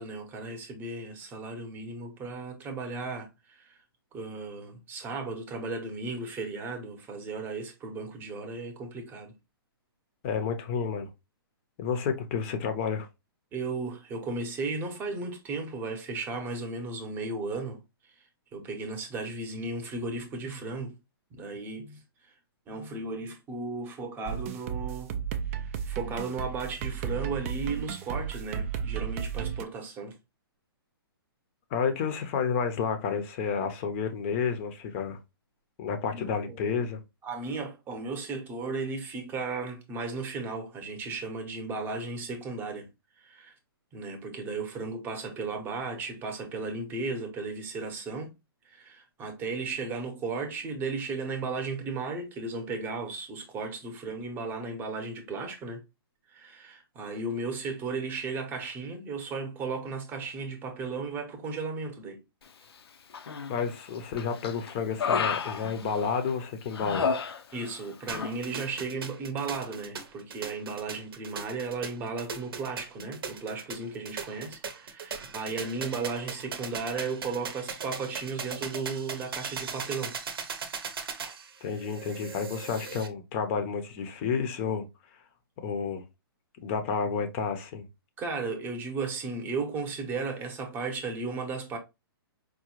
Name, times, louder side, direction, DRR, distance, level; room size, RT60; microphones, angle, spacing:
voice 1, 0.0-3.8 4.1-9.3 13.5-17.8 18.0-18.2 18.5-20.9 21.3-22.3 22.7-25.1 25.6-30.2 36.1-36.9 37.2-42.9 43.2-43.5 43.9-48.3 48.7-55.8 56.3-62.2 67.5-80.2 88.2-91.8, right 3 dB, 15° right, 0.8 m, -35 dB
voice 2, 10.2-11.1 11.8-13.1 31.7-35.2 35.8-37.0 63.5-67.1 81.6-84.9 85.6-86.0 86.6-87.9, left 6 dB, 30° left, 0.6 m, -30 dB
sound 1, 24.3-29.6, right 8 dB, 35° right, 0.3 m, -34 dB
Human voice, 63.1-63.7 64.2-66.3 66.7-67.8 68.1-68.4, left 6 dB, 85° left, 0.5 m, -31 dB
sound 2, 68.1-83.1, right 6 dB, 70° right, 0.8 m, -39 dB
4.8 x 2.2 x 3.0 m
hypercardioid pair, 150°, 13 cm